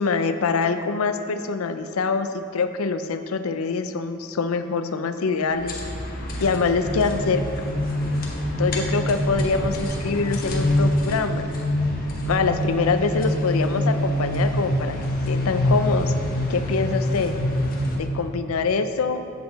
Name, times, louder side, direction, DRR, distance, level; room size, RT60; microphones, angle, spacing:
voice 1, 0.0-5.7 6.4-7.4 8.6-11.6 12.3-15.0 15.3-16.1 16.5-17.3 18.0-19.2, left 4 dB, 85° left, 9 dB, 0.5 m, -24 dB
sound 1, 5.5-18.0, left 1 dB, 45° left, 1.2 m, -25 dB
8.0 x 7.9 x 4.0 m, 2.6 s
head